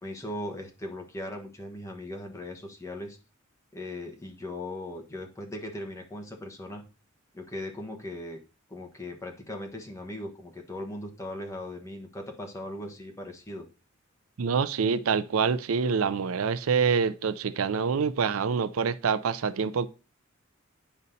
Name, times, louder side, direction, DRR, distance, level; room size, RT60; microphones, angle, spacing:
voice 1, 0.0-3.2 3.7-6.8 7.3-8.4 8.7-13.7, left 1 dB, 15° left, 1.2 m, -38 dB
voice 2, 14.4-19.9, right 6 dB, 90° right, 0.5 m, -26 dB
9.7 x 5.2 x 2.7 m
head